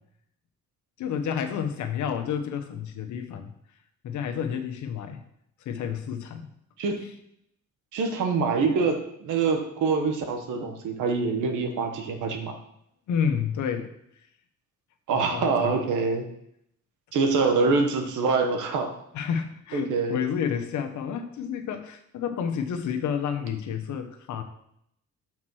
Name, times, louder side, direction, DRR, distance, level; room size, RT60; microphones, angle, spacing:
voice 1, 1.0-3.5 4.0-5.2 5.6-6.5 7.0-7.1 13.1-13.9 15.3-15.8 19.1-24.4, left 7 dB, 75° left, 6 dB, 0.9 m, -30 dB
voice 2, 7.9-12.5 15.1-16.2 17.1-18.9 19.7-20.2, right 4 dB, 80° right, 5 dB, 1.2 m, -25 dB
5.9 x 4.4 x 6.2 m, 0.75 s
cardioid pair, 90°, 30 cm